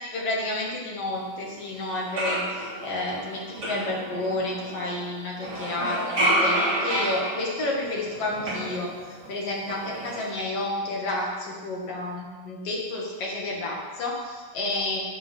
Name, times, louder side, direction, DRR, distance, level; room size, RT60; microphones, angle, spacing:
voice 1, 0.1-15.0, left 2 dB, 45° left, -2 dB, 2.7 m, -30 dB
sound 1, 1.5-1.6 1.9-5.0 5.4-9.3 9.6-10.3, right 1 dB, 30° right, 3.2 m, -29 dB
13.0 x 7.8 x 6.4 m, 1.4 s
omnidirectional pair, 4.3 m